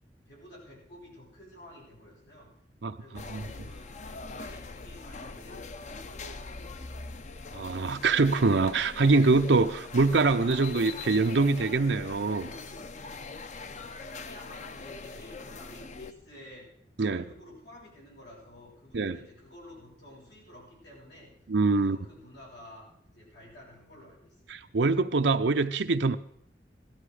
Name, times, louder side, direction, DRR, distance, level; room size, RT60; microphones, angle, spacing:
voice 1, 0.3-2.5 3.0-7.0 13.7-21.3 21.7-24.4, left 1 dB, 85° left, 7.3 m, -51 dB
sound 1, 3.2-16.1, left 3 dB, 45° left, 0.7 m, -42 dB
voice 2, 7.5-12.5 17.0-17.2 18.9-19.2 21.5-22.0 24.5-26.2, right 3 dB, 80° right, 0.6 m, -24 dB
17.5 x 13.0 x 4.9 m
head